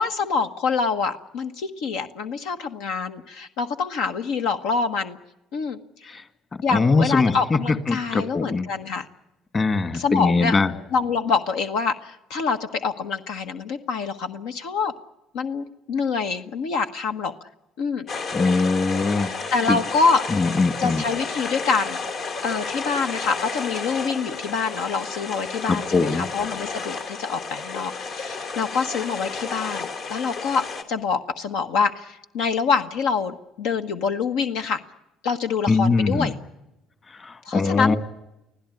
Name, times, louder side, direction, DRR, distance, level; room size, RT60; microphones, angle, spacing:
voice 1, 0.0-5.2 5.5-6.1 6.6-9.1 9.9-10.6 10.9-14.9 15.3-17.3 17.8-18.1 19.2-20.2 20.8-22.0 22.4-34.8 35.2-36.3 37.4-37.9, left 5 dB, 85° left, 7 dB, 1.3 m, -26 dB
voice 2, 6.7-7.6 7.9-8.7 9.5-10.7 18.3-19.8 20.3-21.0 25.7-26.3 35.7-36.3 37.2-38.0, left 3 dB, 30° left, 10 dB, 2.1 m, -21 dB
sound 1, 18.1-30.8, left 4 dB, 65° left, 3.2 m, -32 dB
25.0 x 16.0 x 9.8 m, 0.90 s
cardioid pair, 100°, 0 cm